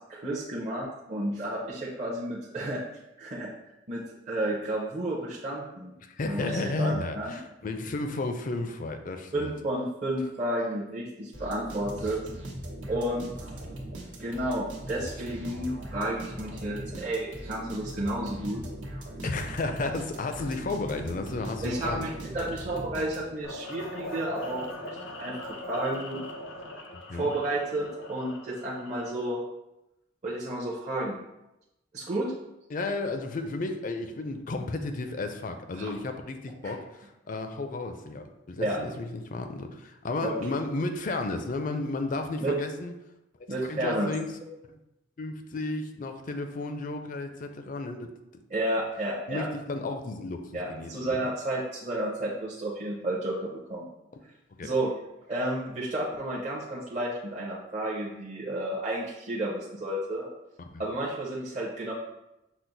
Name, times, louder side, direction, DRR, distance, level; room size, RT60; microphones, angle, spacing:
voice 1, 0.1-2.8 3.2-3.5 3.9-5.9 6.2-7.4 9.3-12.2 12.9-13.4 14.2-18.7 21.6-26.2 26.7-29.4 30.2-31.2 31.9-32.3 35.7-35.9 36.6-36.7 38.6-38.8 40.2-40.3 42.4-42.5 43.5-44.1 48.5-49.5 50.5-53.9 54.6-54.9 55.3-60.3 60.8-61.9, right 1 dB, 35° right, -6 dB, 0.6 m, -31 dB
voice 2, 6.0-9.5 19.2-22.1 26.9-27.3 32.7-42.9 43.7-44.3 44.7-44.8 45.2-48.1 49.3-51.3 54.6-54.7 60.6-60.8, left 2 dB, 45° left, 6 dB, 0.4 m, -33 dB
sound 1, 11.3-23.5, right 1 dB, 85° right, 1.1 m, -40 dB
sound 2, 23.4-29.4, left 1 dB, 85° left, 0.7 m, -41 dB
6.1 x 2.1 x 3.9 m, 0.91 s
head